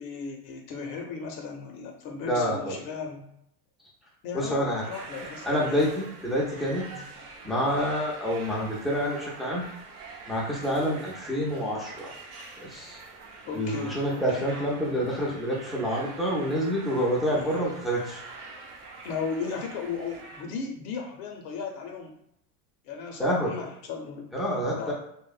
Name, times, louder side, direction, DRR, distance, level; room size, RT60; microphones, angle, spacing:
voice 1, 0.0-3.2 4.2-5.9 6.9-7.1 13.4-14.0 14.3-14.5 17.3-17.7 19.0-22.1 22.8-24.3 24.8-24.9, left 5 dB, 60° left, 2 dB, 0.6 m, -36 dB
voice 2, 2.2-2.8 4.3-4.8 5.5-6.8 7.4-9.6 10.3-12.1 12.6-13.0 13.5-18.2 23.2-23.5 24.3-24.9, equal, ahead, -5 dB, 0.4 m, -27 dB
sound 1, 4.8-20.4, right 3 dB, 80° right, 0.7 m, -45 dB
2.6 x 2.0 x 2.3 m, 0.76 s
hypercardioid pair, 105°, 45 cm